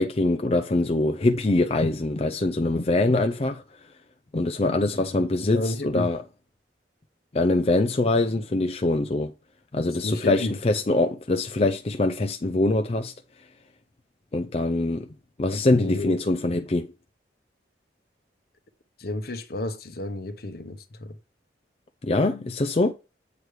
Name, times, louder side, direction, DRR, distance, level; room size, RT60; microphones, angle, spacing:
voice 1, 0.0-4.0 4.3-6.2 7.3-9.3 9.7-13.5 14.3-15.1 15.4-16.9 22.0-22.9, left 2 dB, 35° left, 0.5 m, -24 dB
voice 2, 5.4-6.1 10.0-10.6 15.7-16.2 19.0-21.2, left 2 dB, 55° left, 1.0 m, -31 dB
8.1 x 4.8 x 4.7 m
head